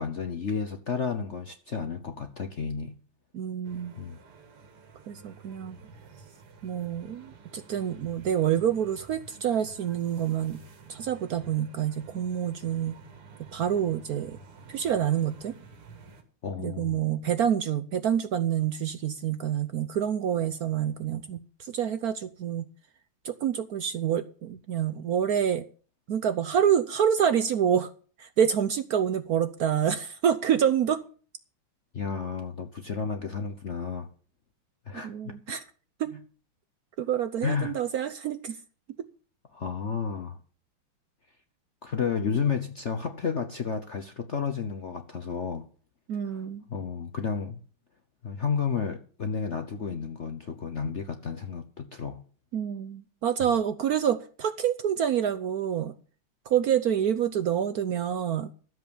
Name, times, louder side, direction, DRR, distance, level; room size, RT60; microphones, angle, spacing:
voice 1, 0.0-3.0 4.0-4.2 16.4-17.0 31.9-34.1 34.9-35.3 37.4-37.8 39.5-40.4 41.8-45.6 46.3-46.4 46.7-47.6 48.2-52.2 53.4-53.6, left 6 dB, 55° left, 0.8 m, -32 dB
voice 2, 3.3-3.9 5.1-5.8 6.6-10.6 10.9-13.0 13.5-14.4 14.7-15.5 16.6-22.7 23.2-25.6 26.1-27.9 28.2-31.0 35.0-35.6 36.0-36.2 37.0-38.6 46.1-46.6 52.5-55.9 56.5-58.5, right 9 dB, 70° right, 0.9 m, -27 dB
sound 1, 3.6-16.2, right 4 dB, 90° right, 2.7 m, -51 dB
13.0 x 7.8 x 7.0 m
omnidirectional pair, 2.4 m